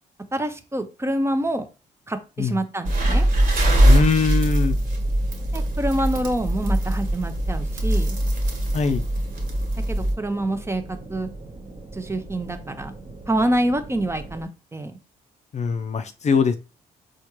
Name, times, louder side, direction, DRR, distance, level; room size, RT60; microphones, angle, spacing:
voice 1, 0.3-1.7 2.1-3.3 5.5-8.2 9.9-11.3 11.9-12.9 13.3-15.0, right 1 dB, 15° right, 8 dB, 0.6 m, -26 dB
sound 1, 2.9-10.1, right 1 dB, 55° right, 1.4 m, -21 dB
sound 2, 3.0-14.5, right 2 dB, 30° right, 0.9 m, -41 dB
voice 2, 3.9-4.8 8.7-9.1 15.5-16.6, left 5 dB, 45° left, 9 dB, 0.4 m, -22 dB
4.3 x 2.4 x 3.0 m, 0.31 s
supercardioid pair, 60°, 17 cm